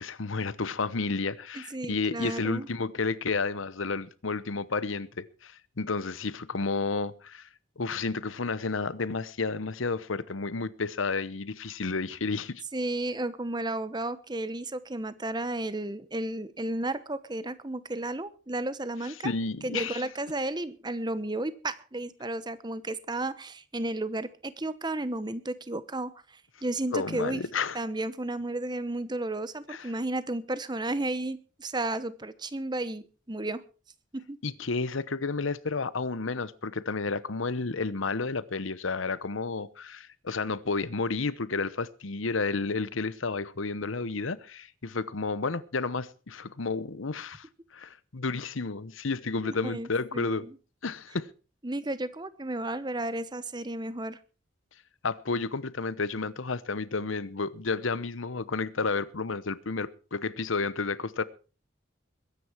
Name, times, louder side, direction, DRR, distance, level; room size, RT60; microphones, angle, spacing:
voice 1, 0.0-7.5 7.8-12.6 19.2-20.0 26.9-27.8 29.7-29.9 34.4-47.5 47.7-50.5 50.8-51.3 55.0-61.2, left 4 dB, 90° left, 1.0 m, -31 dB
voice 2, 1.5-2.7 12.7-19.3 19.6-26.1 26.6-27.4 27.7-33.6 34.1-34.4 49.4-50.6 51.6-54.2, right 2 dB, 20° right, 1.0 m, -33 dB
21.5 x 10.0 x 4.6 m
head